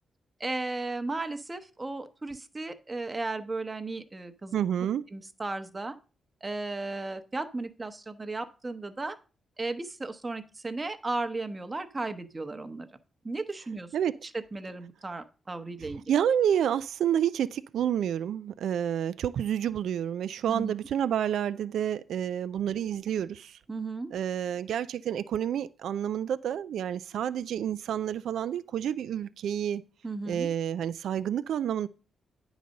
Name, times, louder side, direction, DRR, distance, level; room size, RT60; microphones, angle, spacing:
voice 1, 0.4-4.6 5.1-6.0 6.4-9.2 9.6-12.9 13.2-13.9 14.3-16.0 20.5-20.7 23.7-24.1 30.0-30.5, right 3 dB, 25° right, 0.9 m, -35 dB
voice 2, 4.5-5.0 13.9-14.2 16.1-23.6 24.1-29.8 30.3-31.9, right 9 dB, 80° right, 0.3 m, -29 dB
9.3 x 4.0 x 6.3 m
cardioid pair, 85°, 0 cm